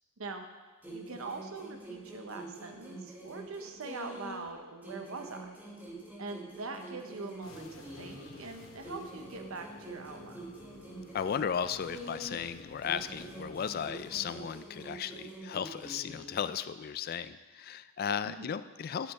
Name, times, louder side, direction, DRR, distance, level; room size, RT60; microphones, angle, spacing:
sound 1, 0.8-4.5 4.8-8.4 8.8-12.5 12.8-16.4, right 2 dB, 10° right, 1.3 m, -46 dB
voice 1, 0.9-5.5 6.2-10.4 18.2-18.5, right 3 dB, 75° right, 5 dB, 0.8 m, -43 dB
sound 2, 7.4-14.4, left 2 dB, 70° left, 1.0 m, -52 dB
voice 2, 11.1-19.1, left 7 dB, 45° left, 13 dB, 0.3 m, -35 dB
11.0 x 6.7 x 4.2 m, 1.3 s
head